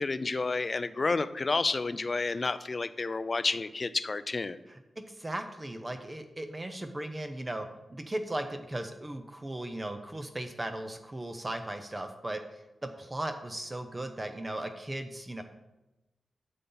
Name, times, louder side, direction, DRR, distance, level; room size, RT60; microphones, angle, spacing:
voice 1, 0.0-4.6, left 3 dB, 35° left, 14 dB, 0.4 m, -30 dB
voice 2, 4.7-12.4 12.8-15.4, right 1 dB, 20° right, 7 dB, 0.6 m, -37 dB
7.7 x 6.9 x 3.9 m, 1.0 s
wide cardioid pair, 110°, 0 cm